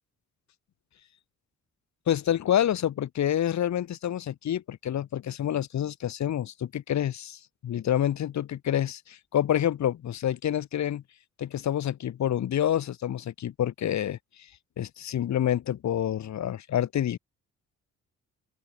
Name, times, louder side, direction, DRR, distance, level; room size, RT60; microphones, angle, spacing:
voice 1, 2.1-11.0 11.4-14.2 14.8-17.2, left 10 dB, 65° left, 3.3 m, -28 dB
open air
cardioid pair, 90°, 30 cm